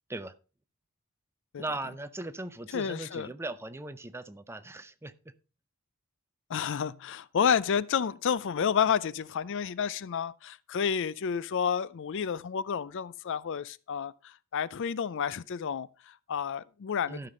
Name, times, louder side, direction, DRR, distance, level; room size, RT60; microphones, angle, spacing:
voice 1, 1.6-5.3 17.1-17.3, right 2 dB, 10° right, 0.6 m, -39 dB
voice 2, 2.7-3.3 6.5-17.3, left 7 dB, 55° left, 0.4 m, -30 dB
13.0 x 5.9 x 5.0 m
head